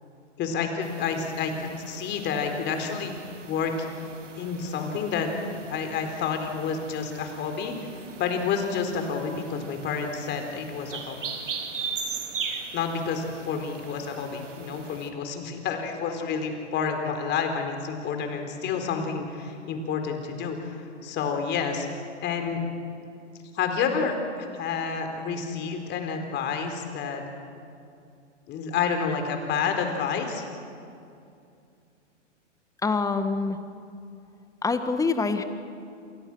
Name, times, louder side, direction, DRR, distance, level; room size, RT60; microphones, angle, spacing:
voice 1, 0.4-3.2 3.4-3.9 4.4-5.3 5.6-7.7 8.2-11.2 12.7-21.9 22.2-22.6 23.5-27.2 28.5-30.4, left 6 dB, 30° left, 5 dB, 4.3 m, -29 dB
sound 1, 0.8-15.1, right 5 dB, 80° right, 3.5 m, -40 dB
voice 2, 32.8-33.6 34.6-35.4, left 4 dB, 10° left, 9 dB, 1.6 m, -25 dB
28.0 x 28.0 x 6.3 m, 2.5 s
hypercardioid pair, 120°, 36 cm